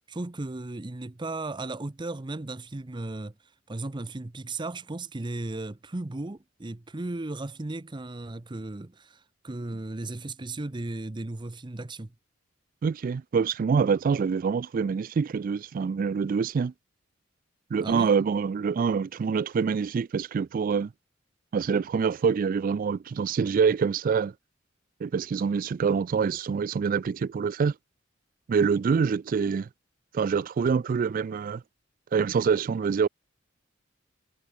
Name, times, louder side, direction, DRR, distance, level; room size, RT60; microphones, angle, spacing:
voice 1, 0.1-3.3 3.7-12.1 17.8-18.1, right 2 dB, 25° right, 0.7 m, -35 dB
voice 2, 12.8-16.7 17.7-20.9 21.5-24.3 25.0-27.7 28.5-29.7 30.1-31.6 32.1-33.1, right 6 dB, 45° right, 0.3 m, -25 dB
head